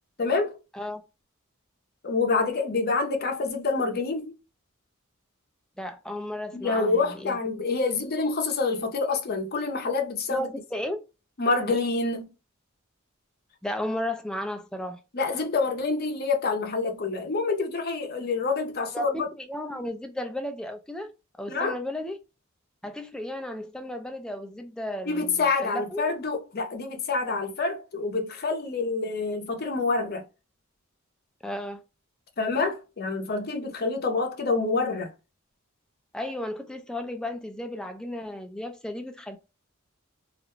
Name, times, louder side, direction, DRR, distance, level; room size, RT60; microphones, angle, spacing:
voice 1, 0.2-0.6 2.0-4.3 6.5-10.5 11.4-12.3 15.1-19.3 21.5-21.8 25.1-30.2 32.4-35.1, left 4 dB, 50° left, 0.6 m, -27 dB
voice 2, 5.8-7.4 10.3-11.0 13.6-15.0 18.9-21.1 21.4-22.2 22.8-26.0 31.4-31.8 36.1-39.4, left 1 dB, 5° left, 0.3 m, -34 dB
2.4 x 2.2 x 3.0 m
head